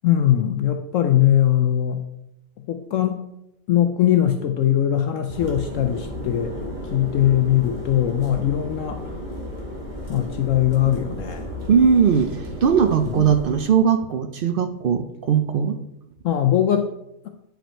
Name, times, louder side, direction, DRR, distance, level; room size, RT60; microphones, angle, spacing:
voice 1, 0.0-2.0 2.7-3.2 3.7-9.2 10.1-11.5 13.0-13.3 16.2-16.9, left 11 dB, 70° left, 6 dB, 0.9 m, -21 dB
sound 1, 5.3-13.6, equal, 30° right, 1.7 m, -33 dB
voice 2, 11.7-15.8, right 7 dB, 65° right, 9 dB, 0.5 m, -19 dB
9.1 x 5.3 x 4.4 m, 0.83 s
omnidirectional pair, 1.5 m